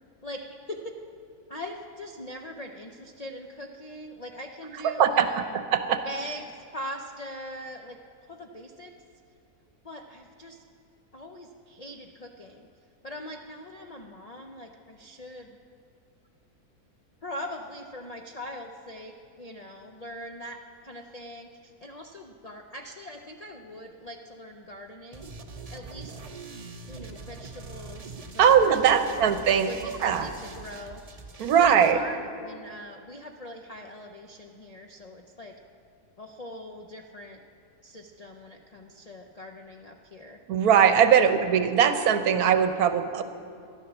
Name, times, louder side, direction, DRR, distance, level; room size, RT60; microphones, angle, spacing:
voice 1, 0.2-1.0 1.5-5.6 6.0-8.9 9.8-10.6 11.1-12.7 13.0-15.6 17.2-20.6 20.8-25.3 25.7-26.2 26.9-28.6 28.9-29.2 29.6-31.0 31.6-35.6 36.2-37.4 37.8-40.4 41.2-41.5 42.2-42.5, left 1 dB, 50° left, 3 dB, 0.4 m, -41 dB
voice 2, 4.8-5.4 5.7-6.0 28.4-29.7 30.0-30.3 31.4-32.0 40.5-43.2, right 8 dB, 75° right, 10 dB, 1.2 m, -20 dB
sound 1, 25.1-31.9, right 4 dB, 35° right, 0.6 m, -43 dB
13.0 x 11.0 x 7.1 m, 2.4 s
omnidirectional pair, 1.6 m